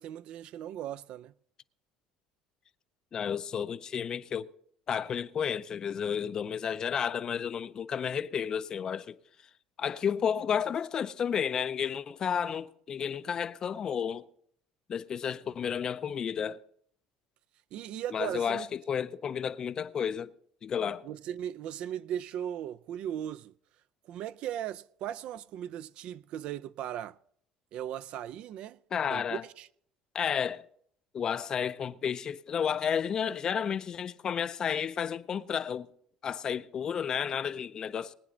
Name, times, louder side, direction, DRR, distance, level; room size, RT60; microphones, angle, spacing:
voice 1, 0.0-1.3 17.7-18.7 21.0-23.5 24.0-27.2 27.7-28.8 29.1-29.7, right 11 dB, 60° right, 0.4 m, -37 dB
voice 2, 3.1-4.5 4.9-9.2 9.8-14.2 14.9-16.6 18.1-20.3 20.6-21.0 28.9-29.4 30.1-30.6 31.1-35.9 36.2-38.1, left 7 dB, 35° left, 0.5 m, -32 dB
20.0 x 9.5 x 3.9 m
cardioid pair, 125°, 2 cm